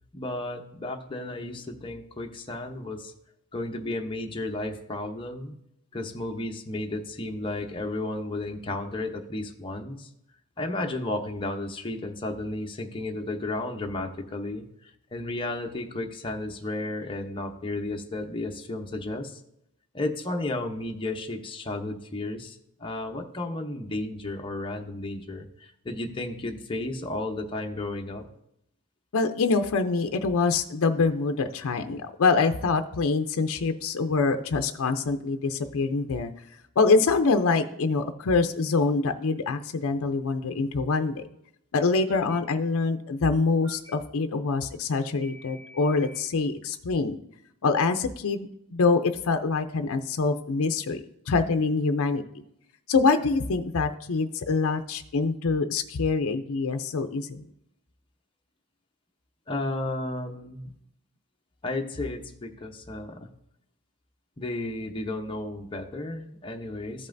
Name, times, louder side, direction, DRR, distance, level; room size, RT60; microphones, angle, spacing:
voice 1, 0.1-3.1 3.5-5.6 5.9-10.1 10.6-14.6 15.1-19.4 19.9-28.3 59.5-60.7 61.6-63.3 64.4-67.1, left 2 dB, 25° left, 2 dB, 0.7 m, -33 dB
voice 2, 29.1-36.3 36.8-41.2 41.7-47.2 47.6-51.0 51.3-52.4 52.9-57.4, left 4 dB, 65° left, 7 dB, 0.5 m, -25 dB
Telephone, 40.7-41.2 42.1-42.4 43.6-43.9 45.2-46.2, equal, 55° right, 1.9 m, -50 dB
13.5 x 5.4 x 2.6 m, 0.77 s
head